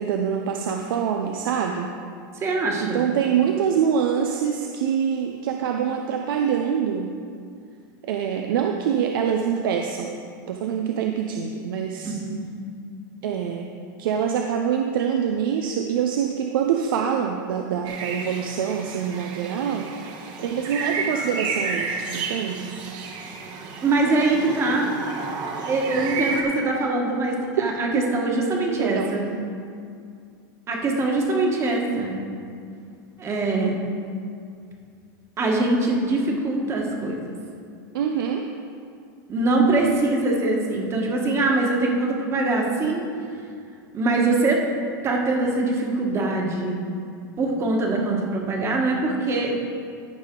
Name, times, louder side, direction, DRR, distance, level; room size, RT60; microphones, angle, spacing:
voice 1, 0.0-1.9 2.8-7.1 8.0-10.1 10.5-12.1 13.2-13.7 14.0-19.9 20.4-22.7 25.9-26.1 27.9-28.0 28.6-29.1 37.9-38.5, right 8 dB, 80° right, 3 dB, 0.6 m, -25 dB
voice 2, 2.3-3.0 12.0-12.5 23.8-24.9 25.7-29.2 30.7-32.2 33.2-33.7 35.4-37.2 39.3-43.0 43.9-44.6 45.0-46.7 47.4-49.5, right 2 dB, 25° right, 0 dB, 1.4 m, -23 dB
sound 1, 17.8-26.4, right 4 dB, 40° right, 1.2 m, -31 dB
13.5 x 5.6 x 3.8 m, 2.3 s
supercardioid pair, 145°, 11 cm